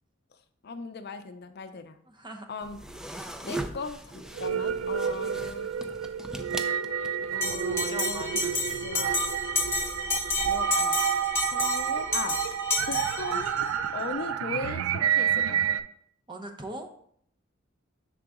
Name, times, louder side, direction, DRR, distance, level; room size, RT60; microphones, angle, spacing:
voice 1, 0.6-2.0 2.5-2.8 3.2-5.7 7.3-8.4 8.8-9.1 10.4-11.0 11.5-12.4 12.9-15.8, left 4 dB, 55° left, 9 dB, 0.5 m, -38 dB
voice 2, 2.1-2.5 5.0-5.3 7.5-9.2 16.3-16.9, right 1 dB, 25° right, 5 dB, 0.7 m, -41 dB
sound 1, 2.6-7.4, right 1 dB, 5° right, 0.4 m, -39 dB
sound 2, 4.3-15.8, right 8 dB, 85° right, 0.4 m, -29 dB
Bell, 7.4-13.6, left 3 dB, 15° left, 0.9 m, -31 dB
6.7 x 3.9 x 3.6 m, 0.65 s
head